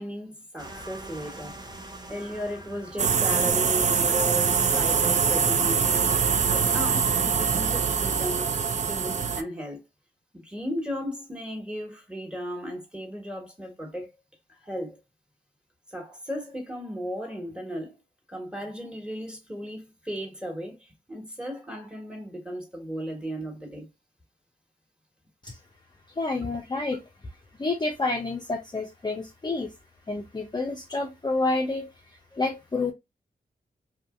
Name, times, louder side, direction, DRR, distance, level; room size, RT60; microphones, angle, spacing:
voice 1, 0.0-1.6 2.1-6.2 6.5-8.5 8.9-9.8 10.3-14.1 14.5-15.0 15.9-18.0 18.3-23.9 32.3-32.4, equal, 5° right, 1.4 m, -35 dB
sound 1, 0.6-6.8, right 1 dB, 25° right, 0.8 m, -46 dB
sound 2, 3.0-9.4, right 6 dB, 45° right, 0.4 m, -23 dB
voice 2, 26.2-27.0 27.6-29.7 30.1-31.9 32.4-32.9, left 3 dB, 25° left, 0.5 m, -28 dB
2.8 x 2.5 x 2.4 m
cardioid pair, 50°, 17 cm